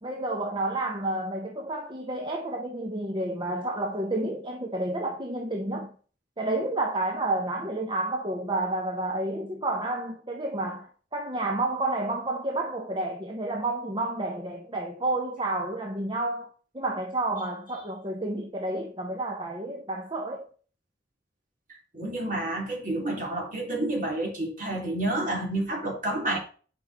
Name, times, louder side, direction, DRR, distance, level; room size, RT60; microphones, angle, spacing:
voice 1, 0.0-5.9 6.4-16.5 16.7-20.5, right 2 dB, 25° right, 0.9 m, -30 dB
voice 2, 21.9-26.4, right 1 dB, 45° right, 3.7 m, -29 dB
9.0 x 5.4 x 4.4 m
head